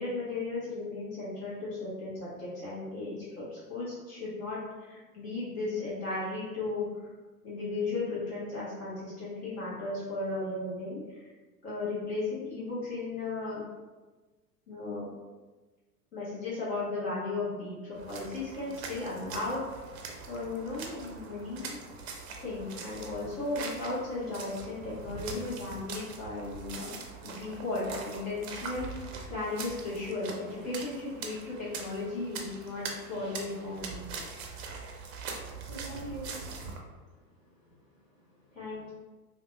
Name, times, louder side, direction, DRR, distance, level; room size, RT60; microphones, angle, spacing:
voice 1, 0.0-7.1 7.4-11.3 11.6-13.7 14.7-15.1 16.1-17.8 18.1-19.8 20.3-21.8 22.4-28.9 29.3-32.8 33.1-34.1 38.5-38.9, left 2 dB, 55° left, -8 dB, 1.3 m, -35 dB
sound 1, 18.0-36.8, right 4 dB, 45° right, 0.5 m, -42 dB
voice 2, 35.3-38.6, right 2 dB, 15° left, -9 dB, 1.3 m, -47 dB
3.3 x 2.6 x 2.3 m, 1.3 s
figure-of-eight pair, 95°, 48 cm